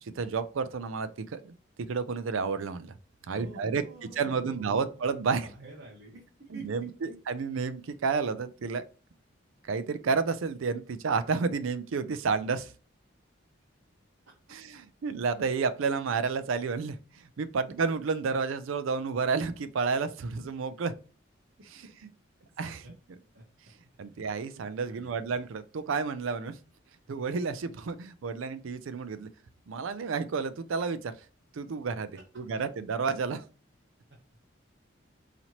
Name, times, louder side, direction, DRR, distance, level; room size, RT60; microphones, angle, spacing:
voice 1, 0.0-2.9 3.3-5.5 6.5-8.8 9.7-12.7 14.5-20.9 21.7-21.8 22.6-22.9 24.0-26.6 27.1-29.3 29.7-31.1 31.5-33.4, right 5 dB, 80° right, 0.4 m, -31 dB
voice 2, 3.3-4.9 5.4-6.2 6.5-6.6 7.1-7.2 20.3-20.5 23.3-23.4 24.5-25.3, right 2 dB, 65° right, 0.9 m, -47 dB
4.1 x 2.9 x 2.9 m
head